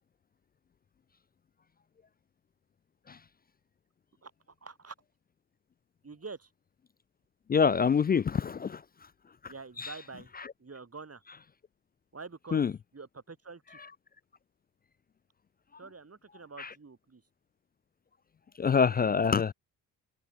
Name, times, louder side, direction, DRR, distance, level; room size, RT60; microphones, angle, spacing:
voice 1, 4.6-4.9 6.0-6.5 9.5-10.3 10.6-11.2 12.1-12.7 12.9-13.8 15.8-17.2, right 4 dB, 35° right, 6.9 m, -46 dB
voice 2, 7.5-8.8 9.4-9.5 9.8-9.9 12.5-12.7 16.6-16.7 18.6-19.5, left 6 dB, 25° left, 0.3 m, -25 dB
supercardioid pair, 50°, 42 cm